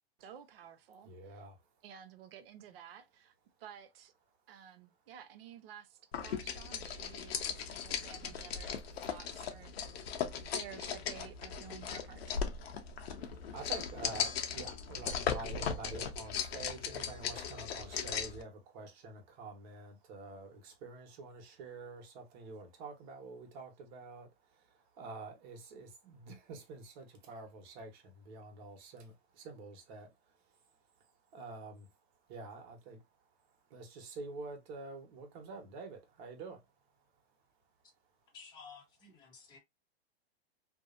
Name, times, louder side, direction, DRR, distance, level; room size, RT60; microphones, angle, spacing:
voice 1, 0.2-1.4 1.8-3.3 3.6-4.1 4.5-8.8 9.1-9.7 10.1-10.2 10.5-12.4, right 9 dB, 65° right, 0.6 m, -53 dB
voice 2, 1.0-1.6 13.1-30.1 31.3-31.9 32.3-33.0 33.7-36.6, right 3 dB, 45° right, 1.0 m, -48 dB
sound 1, 6.1-18.4, left 7 dB, 75° left, 0.6 m, -38 dB
voice 3, 38.3-39.6, left 5 dB, 15° left, 0.6 m, -53 dB
2.6 x 2.0 x 2.4 m
hypercardioid pair, 120°, 31 cm